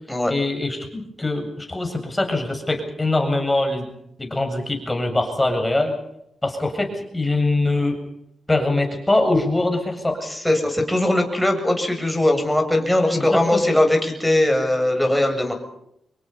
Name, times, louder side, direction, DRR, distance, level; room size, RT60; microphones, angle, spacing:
voice 1, 0.3-3.9 4.2-6.0 6.4-8.0 8.5-10.2 13.1-13.6, left 2 dB, 20° left, 4 dB, 7.8 m, -23 dB
voice 2, 10.2-15.5, left 1 dB, 5° left, 3 dB, 7.6 m, -20 dB
26.5 x 22.0 x 5.6 m, 0.77 s
cardioid pair, 65°, 0 cm